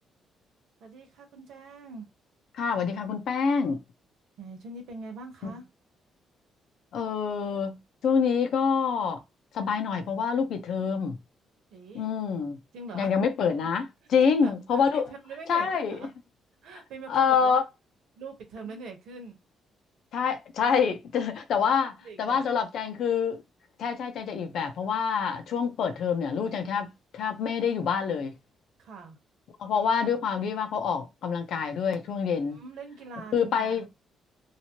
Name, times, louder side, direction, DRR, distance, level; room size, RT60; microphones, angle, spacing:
voice 1, 0.8-2.1 4.4-5.7 11.7-12.1 12.7-13.1 14.2-16.1 16.6-17.6 18.2-19.4 22.0-22.5 28.8-29.2 32.5-33.9, right 4 dB, 80° right, 1.1 m, -43 dB
voice 2, 2.5-3.8 6.9-9.2 9.5-11.2 11.9-12.6 12.9-15.1 15.5-16.0 17.1-17.6 20.1-23.4 23.8-28.3 29.6-32.6 33.3-33.9, left 6 dB, 70° left, 0.7 m, -26 dB
2.9 x 2.7 x 2.9 m
cardioid pair, 90°, 0 cm